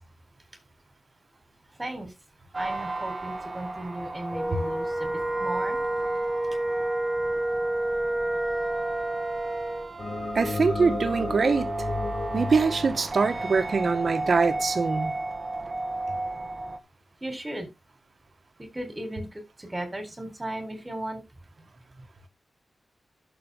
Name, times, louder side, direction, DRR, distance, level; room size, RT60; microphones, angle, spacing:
voice 1, 1.8-2.1 2.5-5.1 5.4-5.8 17.2-17.7 18.6-21.2, right 1 dB, 20° right, 3.9 m, -36 dB
sound 1, 2.5-16.8, right 2 dB, 35° right, 1.3 m, -34 dB
Wind instrument woodwind instrument, 4.3-9.9, right 1 dB, ahead, 1.4 m, -29 dB
sound 2, 10.0-14.4, left 4 dB, 50° left, 0.8 m, -33 dB
voice 2, 10.3-11.7 12.3-15.1, right 4 dB, 60° right, 1.7 m, -23 dB
11.5 x 7.0 x 3.6 m
wide cardioid pair, 95°, 0 cm